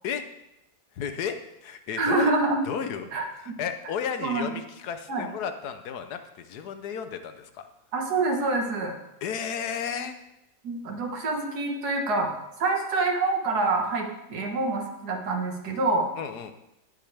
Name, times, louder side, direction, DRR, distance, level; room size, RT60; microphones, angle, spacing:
voice 1, 0.9-2.3 2.6-3.1 3.4-7.7 9.2-10.2 16.2-16.5, left 7 dB, 75° left, 8 dB, 1.3 m, -33 dB
voice 2, 2.0-2.6 3.1-3.6 4.2-4.5 5.1-5.3 7.9-8.9 10.6-12.3 12.6-16.1, right 3 dB, 75° right, 1 dB, 2.0 m, -26 dB
18.0 x 6.2 x 3.4 m, 0.89 s
omnidirectional pair, 1.7 m